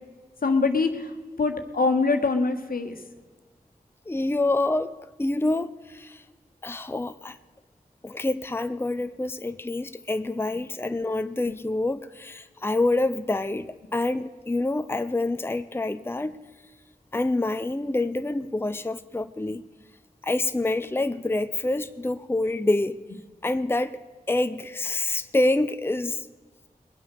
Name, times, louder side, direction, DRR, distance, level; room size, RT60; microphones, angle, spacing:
voice 1, 0.4-3.0, left 3 dB, 70° left, 6 dB, 1.5 m, -24 dB
voice 2, 4.1-4.9 5.2-6.2 6.6-7.4 8.0-16.3 17.1-19.6 20.2-23.0 23.4-24.0 24.3-26.3, left 2 dB, 15° left, 11 dB, 0.6 m, -27 dB
21.5 x 8.3 x 6.7 m, 1.4 s
cardioid pair, 45°, 15 cm